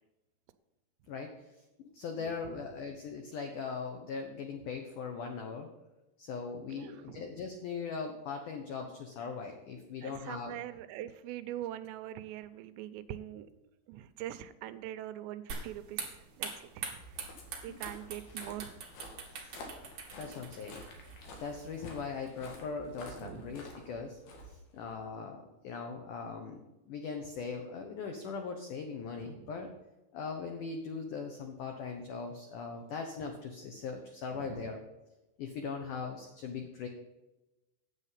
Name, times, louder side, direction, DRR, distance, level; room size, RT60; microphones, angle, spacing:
voice 1, 1.1-5.7 6.2-10.6 17.7-17.8 19.3-19.6 20.2-20.8 21.4-24.2 24.5-29.7 30.1-34.8 35.4-36.9, left 5 dB, 90° left, 4 dB, 1.8 m, -40 dB
voice 2, 6.7-7.2 10.0-13.5 13.9-17.3 17.6-18.8 23.2-23.5 29.2-29.5 34.3-34.7, right 12 dB, 85° right, 11 dB, 2.8 m, -43 dB
sound 1, 15.5-22.1, right 5 dB, 50° right, 2.2 m, -44 dB
Walk footsteps, 16.9-25.1, left 1 dB, 65° left, 3.5 m, -50 dB
9.9 x 8.2 x 5.7 m, 1.0 s
omnidirectional pair, 5.1 m